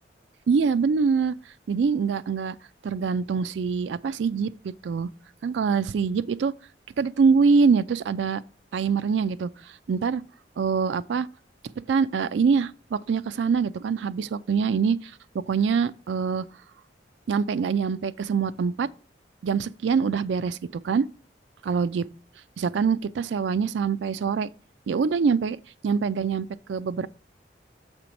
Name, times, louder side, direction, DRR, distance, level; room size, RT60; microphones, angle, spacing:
voice 1, 0.5-1.3 1.7-2.6 2.8-5.1 5.4-6.5 7.0-8.4 8.7-9.5 9.9-10.2 10.6-11.3 11.9-15.1 15.5-16.4 17.3-18.9 19.4-21.1 21.6-22.1 22.6-24.5 24.9-25.6 25.8-27.1, right 5 dB, 75° right, 0.4 m, -24 dB
7.0 x 4.4 x 5.1 m
head